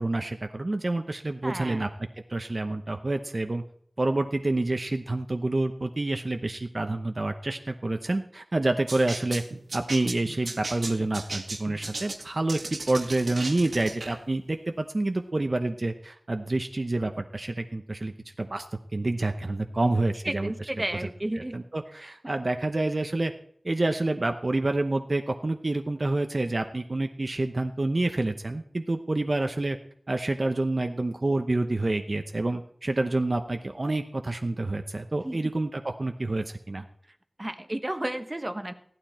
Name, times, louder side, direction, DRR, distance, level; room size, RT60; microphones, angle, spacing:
voice 1, 0.0-1.9 2.3-3.6 4.0-9.4 9.7-18.7 18.9-20.5 21.0-21.1 21.5-23.3 23.6-29.8 30.1-36.8, right 2 dB, 50° right, 6 dB, 0.9 m, -28 dB
voice 2, 1.4-1.9 20.2-21.6 22.0-22.3 35.2-35.4 37.4-38.7, right 1 dB, 30° right, 8 dB, 1.3 m, -32 dB
sound 1, 8.9-14.2, right 2 dB, 85° right, 1.8 m, -36 dB
16.0 x 12.0 x 4.4 m, 0.65 s
wide cardioid pair, 65°, 0 cm